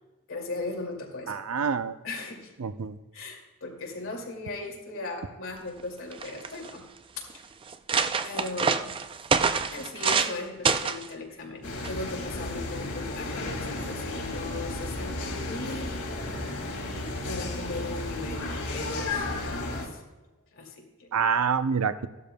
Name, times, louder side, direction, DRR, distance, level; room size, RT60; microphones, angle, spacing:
voice 1, 0.3-1.4 2.0-2.5 3.1-6.8 7.3-7.4 8.2-8.9 9.7-15.9 17.3-20.0 20.5-21.1, left 2 dB, 65° left, 0 dB, 2.3 m, -37 dB
voice 2, 1.3-1.9 2.6-2.9 21.1-22.1, right 6 dB, 85° right, 12 dB, 0.5 m, -26 dB
sound 1, 5.8-5.9 6.1-6.7 7.3-7.4 7.7-10.4 10.7-11.1 11.8-12.1, right 5 dB, 25° right, 0.3 m, -26 dB
sound 2, 11.6-19.9, left 2 dB, 85° left, 2.3 m, -33 dB
15.0 x 12.0 x 2.2 m, 1.1 s
head